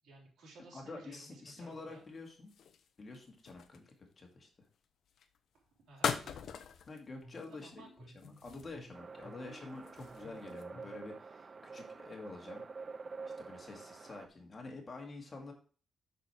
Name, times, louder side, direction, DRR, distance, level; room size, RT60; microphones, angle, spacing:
voice 1, 0.0-2.0 5.5-6.4 7.5-8.1, right 3 dB, 80° right, -2 dB, 3.4 m, -57 dB
voice 2, 0.7-2.5 3.0-4.7 6.9-7.8 8.2-12.7 13.4-15.5, left 3 dB, 35° left, 2 dB, 2.2 m, -48 dB
sound 1, 1.7-4.1 5.1-5.4 6.0-7.0 7.3-7.7 8.2-9.0 9.4-10.6, left 7 dB, 70° left, 0.8 m, -41 dB
sound 2, 7.2-11.1, equal, 20° left, 4.1 m, -56 dB
sound 3, 8.9-14.3, right 4 dB, 40° right, 0.4 m, -48 dB
6.6 x 6.3 x 4.5 m, 0.39 s
cardioid pair, 100°, 0 cm